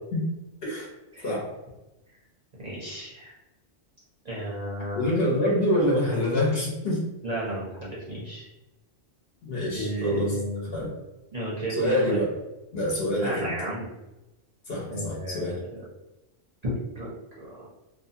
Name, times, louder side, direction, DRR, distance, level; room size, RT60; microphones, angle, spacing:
voice 1, 2.6-3.4 4.2-5.1 7.2-8.5 9.7-10.7 11.3-12.2 13.2-13.9 14.9-15.8 16.6-17.1 17.4-17.7, right 1 dB, 40° right, -8 dB, 0.7 m, -32 dB
voice 2, 4.9-7.1 9.4-10.3 10.7-10.9 11.8-12.3 12.7-13.5 14.7-15.6, left 1 dB, 55° left, -4 dB, 1.0 m, -26 dB
2.6 x 2.3 x 2.7 m, 0.99 s
omnidirectional pair, 1.3 m